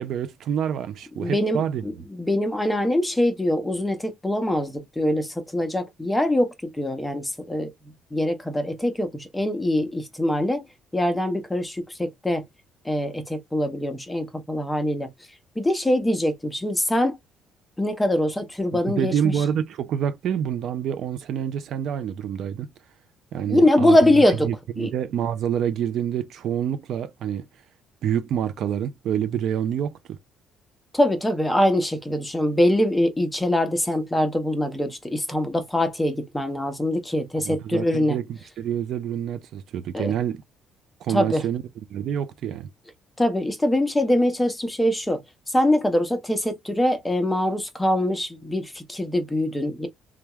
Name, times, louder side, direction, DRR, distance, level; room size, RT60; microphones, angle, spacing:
voice 1, 0.0-1.8 19.0-22.7 23.3-24.0 24.4-27.4 28.0-30.2 37.4-40.4 41.0-41.6 41.9-42.7, right 9 dB, 60° right, 0.4 m, -27 dB
voice 2, 1.2-7.7 8.1-10.7 10.9-12.4 12.8-15.1 15.6-17.2 17.8-19.3 23.5-24.5 24.8-24.9 30.9-38.2 39.9-40.1 41.1-41.4 43.2-45.2 45.5-49.9, left 1 dB, 10° left, 0.7 m, -23 dB
3.4 x 2.3 x 2.9 m
cardioid pair, 135°, 0 cm